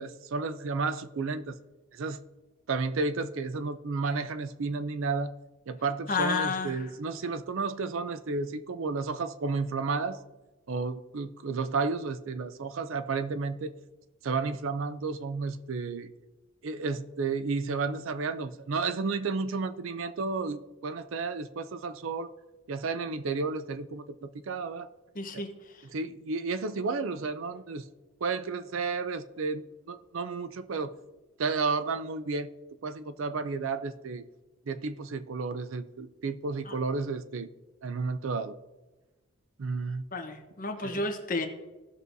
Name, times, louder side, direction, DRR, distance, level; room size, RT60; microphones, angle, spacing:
voice 1, 0.0-1.6 1.9-2.2 2.7-5.3 5.7-10.2 10.7-13.7 14.2-16.1 16.6-22.3 22.7-24.9 25.3-25.4 25.8-27.9 28.2-30.9 31.4-32.5 32.8-34.2 34.7-37.5 37.8-38.6 39.6-40.0 40.8-41.1, right 4 dB, 75° right, 0.5 m, -32 dB
voice 2, 6.1-6.9 25.1-25.5 36.7-36.8 40.1-41.5, left 3 dB, 40° left, 1.0 m, -31 dB
16.5 x 6.1 x 2.7 m
head